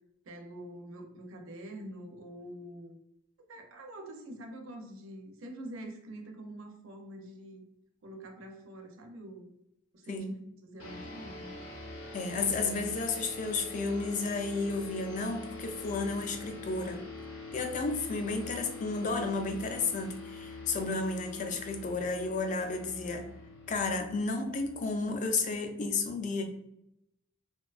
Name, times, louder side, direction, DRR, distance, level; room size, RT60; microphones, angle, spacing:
voice 1, 0.2-3.0 3.5-7.6 8.0-9.5 9.9-10.3 10.6-11.5, right 1 dB, 75° right, 3 dB, 0.5 m, -45 dB
sound 1, 10.8-25.6, left 3 dB, 80° left, 0.6 m, -45 dB
voice 2, 12.1-17.0 17.5-23.3 23.7-26.4, left 3 dB, 35° left, 5 dB, 0.3 m, -32 dB
2.6 x 2.2 x 2.3 m, 0.81 s
head